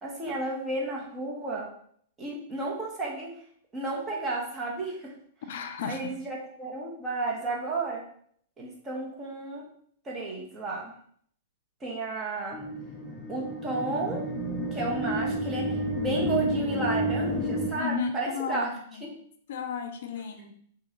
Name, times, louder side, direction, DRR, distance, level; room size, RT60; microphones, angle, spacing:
voice 1, 0.0-1.7 2.2-3.3 3.7-5.1 5.8-8.0 8.6-9.6 10.0-10.9 11.8-12.6 13.3-14.2 14.7-18.7 19.0-19.1, right 3 dB, 20° right, -2 dB, 1.4 m, -32 dB
voice 2, 5.5-6.1 17.8-19.1 19.5-20.5, left 6 dB, 65° left, 7 dB, 0.5 m, -34 dB
sound 1, 12.5-17.7, equal, 10° left, 0.7 m, -30 dB
6.3 x 2.6 x 2.9 m, 0.63 s
hypercardioid pair, 115°, 0 cm